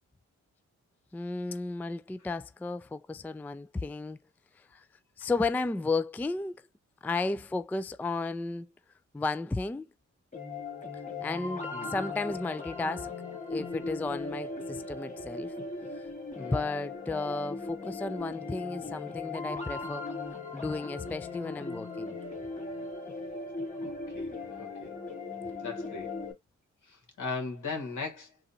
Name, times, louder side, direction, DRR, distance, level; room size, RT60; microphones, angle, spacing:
voice 1, 1.1-4.2 4.7-4.9 5.2-6.6 7.0-8.7 9.1-9.8 11.2-13.1 13.4-15.5 16.4-20.1 20.5-22.2, left 3 dB, 5° left, 0.3 m, -33 dB
sound 1, 10.3-26.3, left 3 dB, 25° left, 2.0 m, -38 dB
voice 2, 23.8-24.9 25.6-26.1 26.9-28.3, left 4 dB, 70° left, 2.1 m, -38 dB
3.9 x 2.5 x 4.1 m
cardioid pair, 60°, 31 cm